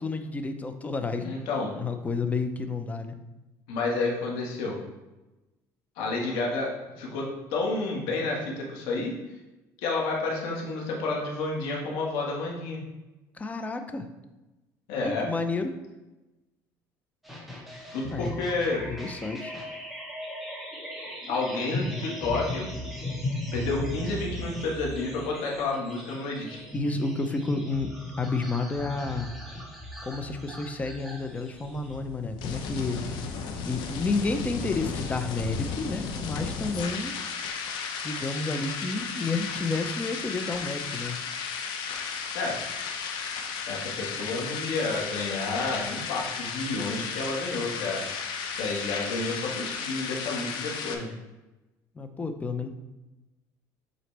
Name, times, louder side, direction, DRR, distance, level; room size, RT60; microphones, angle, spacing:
voice 1, 0.0-1.4 1.8-3.2 13.3-14.1 15.0-15.7 18.1-18.3 18.9-19.5 26.7-27.9 28.2-29.3 30.0-33.0 33.6-37.2 38.0-41.2 52.0-52.7, left 3 dB, 20° left, 7 dB, 0.6 m, -30 dB
voice 2, 1.2-1.8 3.7-4.8 6.0-9.1 9.8-12.8 14.9-15.3 17.9-18.8 21.3-22.8 23.5-26.6 42.3-42.6 43.7-48.0 48.5-51.1, left 3 dB, 85° left, -2 dB, 1.6 m, -30 dB
sound 1, 17.2-32.0, left 1 dB, ahead, 1.3 m, -37 dB
sound 2, 31.3-50.9, left 6 dB, 70° left, 0.8 m, -34 dB
7.7 x 4.0 x 3.4 m, 1.1 s
cardioid pair, 130°, 8 cm